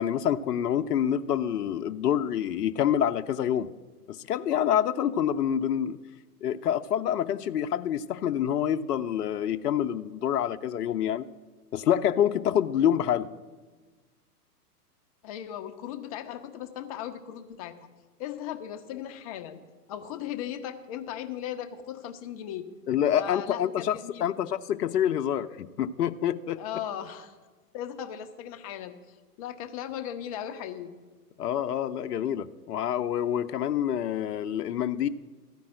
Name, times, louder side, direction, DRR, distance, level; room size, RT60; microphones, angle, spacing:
voice 1, 0.0-3.7 4.1-6.0 6.4-11.3 11.7-13.3 22.9-26.6 31.4-35.1, left 10 dB, 80° left, 8 dB, 0.6 m, -27 dB
voice 2, 15.2-17.7 18.2-19.6 19.9-22.7 23.1-24.3 26.6-27.3 27.7-30.9, left 10 dB, 25° left, 7 dB, 0.5 m, -37 dB
13.5 x 5.2 x 7.6 m, 1.3 s
hypercardioid pair, 125°, 47 cm